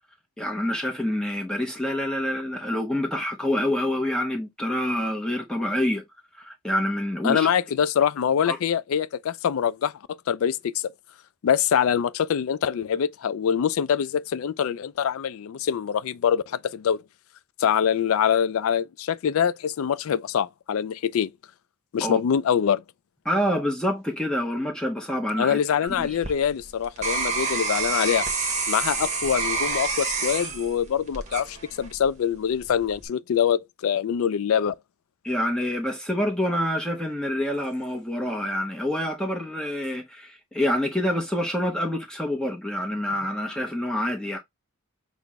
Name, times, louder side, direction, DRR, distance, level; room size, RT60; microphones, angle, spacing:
voice 1, 0.4-6.0 6.4-7.5 8.4-8.6 22.0-22.2 23.3-26.2 35.2-44.4, left 1 dB, 5° left, 0.7 m, -27 dB
voice 2, 7.2-10.8 11.4-17.0 17.6-21.3 21.9-22.8 25.4-28.3 28.7-34.7, left 8 dB, 65° left, 0.3 m, -24 dB
sound 1, 25.9-32.1 32.6-33.1, right 4 dB, 30° right, 1.0 m, -28 dB
5.9 x 2.1 x 3.4 m
head